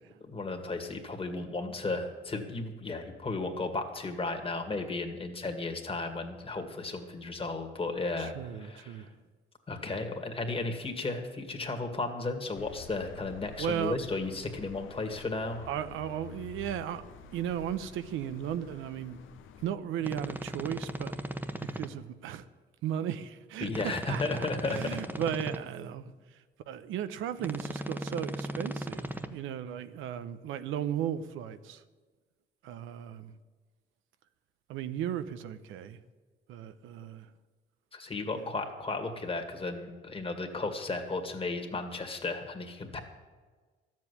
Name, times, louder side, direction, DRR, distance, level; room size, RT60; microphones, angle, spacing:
voice 1, 0.3-9.0 9.7-15.7 23.6-25.0 37.9-43.0, left 3 dB, 30° left, 2.1 m, -34 dB
voice 2, 8.2-9.1 13.6-14.0 15.7-17.0 17.3-19.2 19.6-21.1 21.6-22.4 22.8-31.8 32.6-33.3 34.7-36.0 36.5-37.3 38.3-38.5, right 10 dB, 90° right, 0.8 m, -36 dB
sound 1, 12.5-19.7, left 6 dB, 85° left, 0.9 m, -49 dB
sound 2, 20.0-21.9 23.7-25.6 27.4-29.3, right 1 dB, 10° right, 1.0 m, -37 dB
13.0 x 7.6 x 9.9 m
cardioid pair, 90°, 20 cm